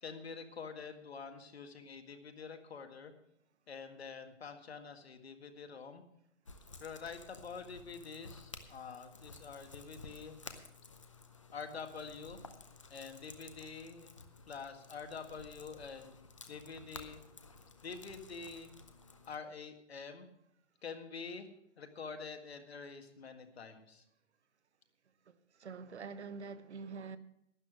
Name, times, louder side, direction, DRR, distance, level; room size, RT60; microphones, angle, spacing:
voice 1, 0.0-3.1 3.7-6.0 6.8-10.4 11.5-12.4 12.9-14.2 14.5-16.2 16.5-17.2 17.8-18.7 19.3-20.3 20.8-21.5 21.8-24.0, left 5 dB, 60° left, 1.8 m, -46 dB
sound 1, 6.5-19.4, left 3 dB, 25° left, 0.6 m, -54 dB
voice 2, 25.3-27.2, right 5 dB, 65° right, 1.0 m, -46 dB
12.0 x 10.0 x 6.1 m
hypercardioid pair, 175°, 36 cm